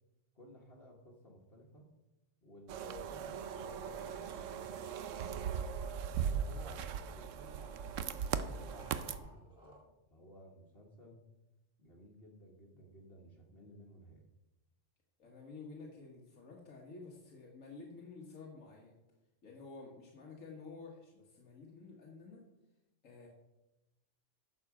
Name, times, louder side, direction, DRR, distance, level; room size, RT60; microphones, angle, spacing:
voice 1, 0.3-1.9 2.4-5.6 6.1-11.2 11.8-14.2, left 1 dB, 50° left, -2 dB, 1.5 m, -57 dB
sound 1, 2.7-9.2, right 7 dB, 80° right, 1.0 m, -39 dB
sound 2, 3.3-9.8, equal, 5° right, 2.3 m, -59 dB
voice 2, 15.2-19.0 19.4-22.4 23.0-23.3, left 4 dB, 90° left, -2 dB, 1.8 m, -51 dB
12.0 x 6.7 x 4.8 m, 1.0 s
omnidirectional pair, 1.3 m